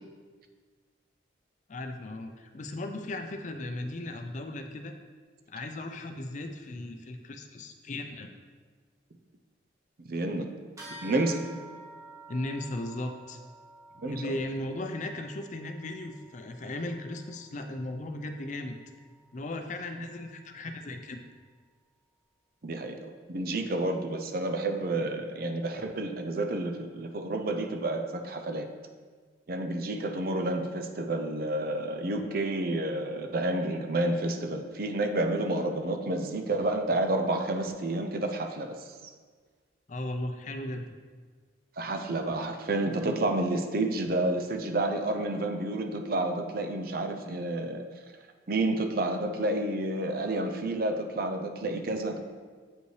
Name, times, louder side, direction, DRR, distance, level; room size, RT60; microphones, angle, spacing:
voice 1, 1.7-4.9 5.5-8.3 12.3-13.4 14.1-18.8 19.3-21.2 39.9-40.9, left 1 dB, 40° left, 6 dB, 0.5 m, -36 dB
voice 2, 10.1-10.5 11.0-11.5 14.0-14.2 20.0-20.1 22.6-28.7 29.5-38.8 41.8-47.8 48.5-52.2, right 2 dB, 55° right, 5 dB, 0.6 m, -30 dB
sound 1, 10.8-20.6, right 2 dB, 15° right, 1.1 m, -51 dB
7.9 x 5.3 x 3.2 m, 1.5 s
head